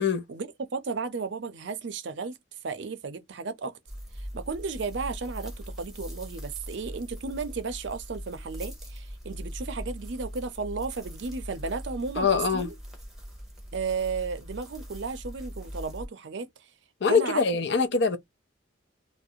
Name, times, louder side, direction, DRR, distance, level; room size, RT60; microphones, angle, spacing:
voice 1, 0.0-2.4 2.6-3.8 4.2-12.7 13.7-16.5 17.1-17.4, right 4 dB, 60° right, 0.5 m, -34 dB
sound 1, 3.9-16.1, equal, ahead, 0.8 m, -41 dB
voice 2, 12.2-12.7 17.0-18.2, left 5 dB, 55° left, 0.5 m, -23 dB
2.4 x 2.0 x 2.6 m
head